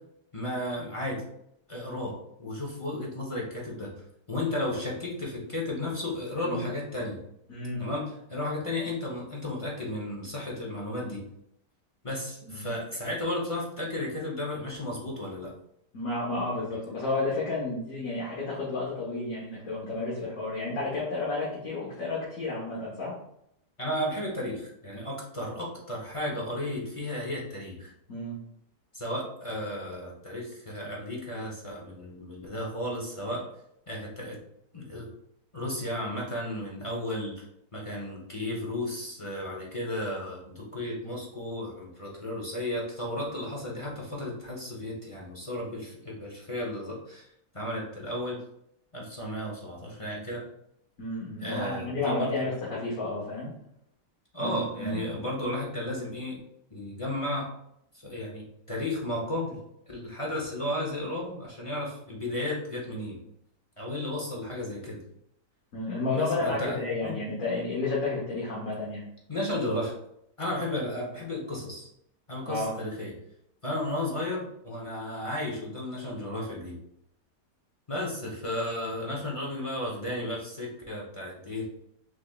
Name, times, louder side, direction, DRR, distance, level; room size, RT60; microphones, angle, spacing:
voice 1, 0.3-1.2 1.7-2.1 2.4-3.9 4.3-7.2 7.8-11.2 12.0-15.5 23.8-27.9 28.9-33.4 33.9-34.4 34.7-35.1 35.5-37.4 37.7-47.3 47.5-48.4 48.9-50.4 51.4-52.5 54.3-56.4 56.7-57.5 58.0-59.6 59.9-63.2 63.8-65.0 66.1-67.2 69.3-69.9 70.4-71.9 72.3-73.1 73.6-76.8 77.9-81.6, left 1 dB, 25° left, -3 dB, 0.7 m, -33 dB
voice 2, 7.5-7.8 12.4-12.8 15.9-23.1 28.1-28.3 51.0-53.5 54.4-55.1 65.7-69.0 72.4-72.7, left 2 dB, 55° left, -6 dB, 1.6 m, -31 dB
6.2 x 3.2 x 2.4 m, 0.75 s
omnidirectional pair, 1.9 m